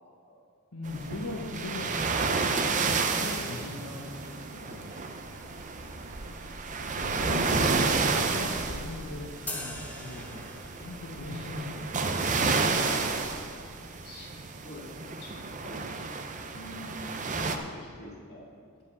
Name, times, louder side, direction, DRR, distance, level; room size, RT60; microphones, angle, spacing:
voice 1, 0.7-2.7 3.0-4.1 4.5-5.0 6.8-10.5 10.8-12.5 16.5-17.4, left 2 dB, 75° left, -2 dB, 1.3 m, -40 dB
sound 1, 0.9-17.6, right 4 dB, 35° right, 0.6 m, -31 dB
sound 2, 1.1-11.0, equal, 15° right, 1.7 m, -54 dB
sound 3, 9.5-11.1, left 1 dB, 5° left, 0.8 m, -40 dB
voice 2, 14.0-15.3 15.6-15.8 17.2-18.5, left 1 dB, 45° left, -5 dB, 2.4 m, -47 dB
11.5 x 5.0 x 7.0 m, 2.3 s
head